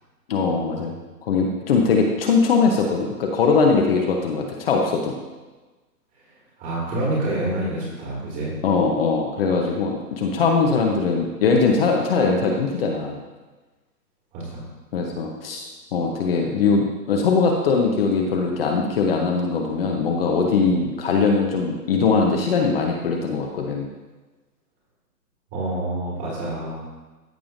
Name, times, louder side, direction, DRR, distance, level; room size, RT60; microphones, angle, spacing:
voice 1, 0.3-0.9 1.2-5.1 8.6-13.2 14.9-23.9, left 4 dB, 35° left, 1 dB, 0.9 m, -21 dB
voice 2, 6.3-8.6 14.3-14.7 25.5-26.9, right 1 dB, 25° right, -5 dB, 2.0 m, -28 dB
14.0 x 5.5 x 2.6 m, 1.2 s
hypercardioid pair, 150°, 49 cm